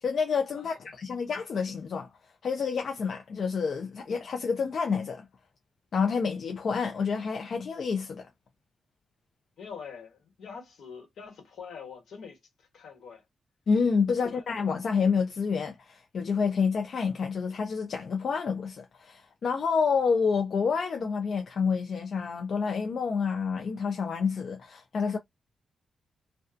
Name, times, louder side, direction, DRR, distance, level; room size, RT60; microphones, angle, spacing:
voice 1, 0.0-2.1 2.4-5.3 5.9-8.3 13.7-25.2, left 5 dB, 55° left, 0.4 m, -28 dB
voice 2, 9.6-13.2 14.1-14.4, left 6 dB, 80° left, 1.2 m, -45 dB
2.4 x 2.2 x 2.4 m
wide cardioid pair, 145°, 0 cm